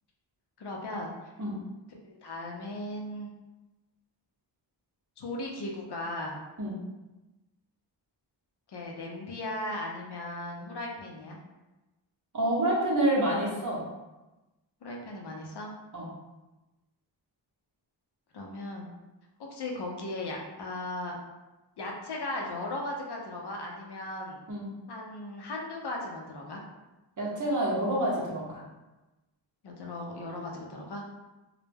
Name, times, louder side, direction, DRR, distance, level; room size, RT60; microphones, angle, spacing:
voice 1, 0.6-1.1 2.0-3.3 5.2-6.4 8.7-11.4 14.8-15.7 18.3-18.9 19.4-21.2 21.8-24.4 24.9-26.6 29.6-31.0, left 1 dB, 60° left, -1 dB, 0.6 m, -37 dB
voice 2, 12.3-13.8 15.9-16.1 24.5-24.7 27.2-28.6, right 1 dB, 40° right, -4 dB, 0.7 m, -27 dB
2.1 x 2.1 x 3.2 m, 1.1 s
wide cardioid pair, 90°, 45 cm